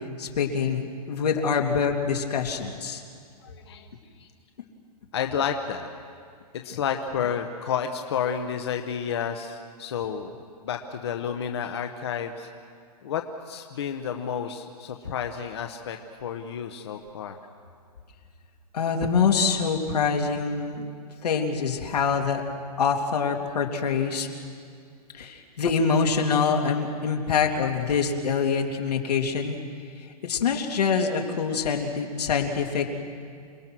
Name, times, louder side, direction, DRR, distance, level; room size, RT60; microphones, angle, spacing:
voice 1, 0.2-3.0 18.7-20.9 21.2-22.4 22.8-24.3 25.1-29.6 30.2-32.9, left 5 dB, 80° left, 2 dB, 2.9 m, -25 dB
voice 2, 3.4-3.9 4.2-4.3 5.1-5.9 6.6-10.4 10.6-12.5 13.0-17.4, left 7 dB, 40° left, 5 dB, 1.0 m, -31 dB
28.0 x 19.5 x 6.2 m, 2.3 s
hypercardioid pair, 180°, 20 cm